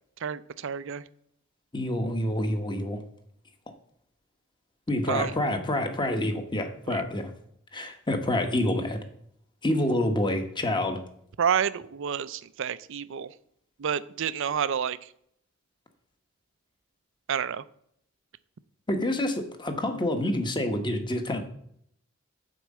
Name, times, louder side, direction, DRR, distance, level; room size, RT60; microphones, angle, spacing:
voice 1, 0.2-1.0 5.1-5.3 6.9-7.0 11.4-13.3 13.8-15.0 17.3-17.6, right 7 dB, 65° right, 16 dB, 0.5 m, -29 dB
voice 2, 1.7-3.0 4.9-7.3 7.7-9.0 9.6-11.0 18.9-21.4, left 1 dB, 25° left, 6 dB, 1.1 m, -27 dB
9.1 x 4.6 x 7.3 m, 0.69 s
head